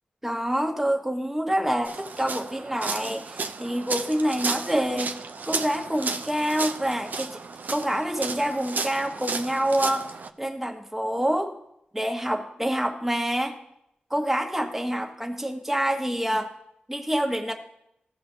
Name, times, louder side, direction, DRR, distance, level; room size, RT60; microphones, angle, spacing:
voice 1, 0.2-5.1 5.5-7.4 7.7-10.1 10.4-11.5 11.9-13.5 14.1-16.5 16.9-17.5, equal, 10° right, 2 dB, 1.3 m, -27 dB
sound 1, 1.8-10.3, right 4 dB, 60° right, 0.5 m, -33 dB
15.5 x 6.9 x 2.8 m, 0.77 s
wide cardioid pair, 80°, 3 cm